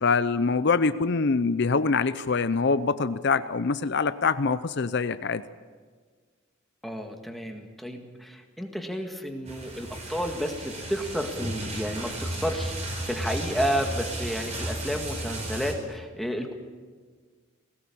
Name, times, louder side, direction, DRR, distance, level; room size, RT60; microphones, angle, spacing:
voice 1, 0.0-5.4, left 4 dB, 55° left, 13 dB, 0.6 m, -24 dB
voice 2, 6.8-16.5, equal, ahead, 3 dB, 1.8 m, -31 dB
sound 1, 9.5-15.7, right 1 dB, 35° right, 4.2 m, -34 dB
20.0 x 17.5 x 8.6 m, 1.5 s
head